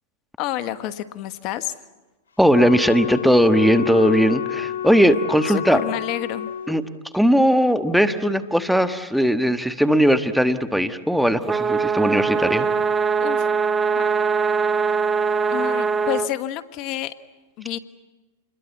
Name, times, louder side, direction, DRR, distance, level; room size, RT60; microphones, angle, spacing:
voice 1, 0.4-1.7 5.7-6.5 13.2-13.5 13.9-14.1 15.5-17.1 17.6-17.8, left 13 dB, 45° left, 11 dB, 1.3 m, -29 dB
voice 2, 2.4-5.8 6.7-6.8 7.1-12.7, equal, ahead, 8 dB, 1.3 m, -18 dB
Wind instrument woodwind instrument, 2.5-6.8, left 11 dB, 90° left, 0.9 m, -29 dB
sound 1, 11.4-16.3, right 5 dB, 20° right, 0.8 m, -22 dB
28.0 x 22.0 x 8.4 m, 1.2 s
hypercardioid pair, 115°, 0 cm